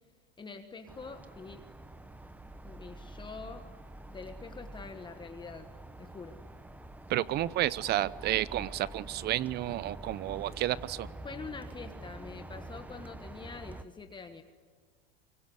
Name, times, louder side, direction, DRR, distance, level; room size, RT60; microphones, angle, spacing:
voice 1, 0.4-1.6 2.6-3.6 4.1-5.7 6.0-6.4 11.2-14.4, left 4 dB, 15° left, 7 dB, 1.4 m, -45 dB
sound 1, 0.9-13.8, right 2 dB, 5° right, 1.0 m, -47 dB
voice 2, 7.1-11.1, right 14 dB, 35° right, 19 dB, 0.8 m, -31 dB
24.0 x 24.0 x 9.4 m, 1.5 s
supercardioid pair, 120°, 30 cm